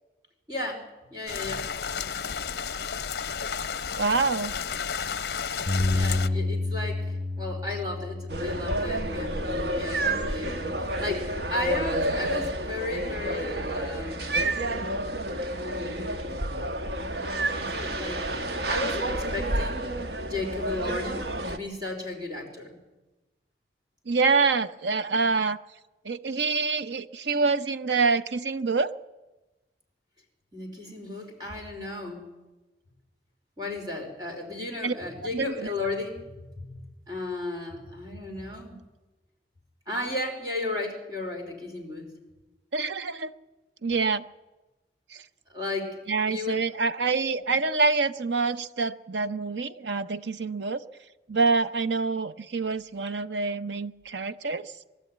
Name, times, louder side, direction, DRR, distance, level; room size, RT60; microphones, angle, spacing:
voice 1, 0.5-1.7 5.9-14.3 15.5-16.1 16.9-19.9 20.2-21.2 21.5-22.8 30.5-32.3 33.6-38.8 39.9-42.1 45.5-46.0 46.3-46.6, left 2 dB, 25° right, 1 dB, 4.3 m, -34 dB
sound 1, 1.3-6.3, left 6 dB, 65° left, 0.7 m, -32 dB
voice 2, 4.0-4.5 24.1-25.6 26.0-28.9 34.8-34.9 35.3-35.7 42.7-43.3 43.8-44.2 45.1-45.2 46.1-50.8 51.3-54.7, right 4 dB, 85° right, 12 dB, 0.8 m, -26 dB
Bass guitar, 5.7-11.9, left 2 dB, 50° right, 3.3 m, -31 dB
sound 2, 8.3-21.6, right 1 dB, 70° right, 1.2 m, -30 dB
22.0 x 13.0 x 9.3 m, 1.1 s
head